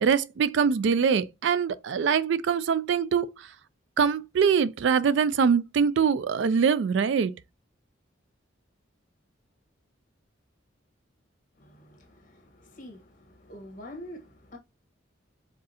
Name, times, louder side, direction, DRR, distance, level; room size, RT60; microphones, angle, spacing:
voice 1, 0.0-3.3 4.0-7.3, right 6 dB, 65° right, 0.3 m, -23 dB
voice 2, 11.6-14.6, left 1 dB, 45° left, 1.3 m, -46 dB
4.8 x 3.6 x 2.8 m
head